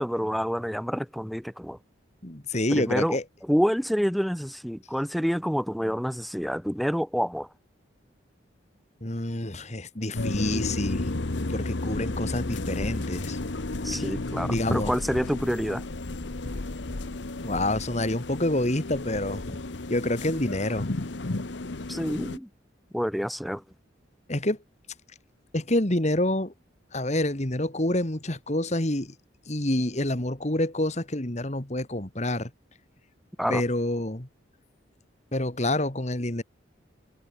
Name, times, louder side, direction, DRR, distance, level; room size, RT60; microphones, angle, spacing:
voice 1, 0.0-1.8 2.7-3.2 3.5-7.5 13.8-15.8 21.9-22.5 22.9-23.6 33.4-33.6, equal, ahead, 1.6 m, -27 dB
voice 2, 2.2-3.2 9.0-11.2 11.5-13.4 13.9-14.0 14.5-14.9 17.4-19.6 19.9-20.9 24.3-24.6 25.5-26.5 26.9-29.1 29.5-32.5 33.5-34.3 35.3-36.4, left 1 dB, 35° left, 2.2 m, -27 dB
sound 1, 10.1-22.4, left 2 dB, 70° left, 1.1 m, -32 dB
head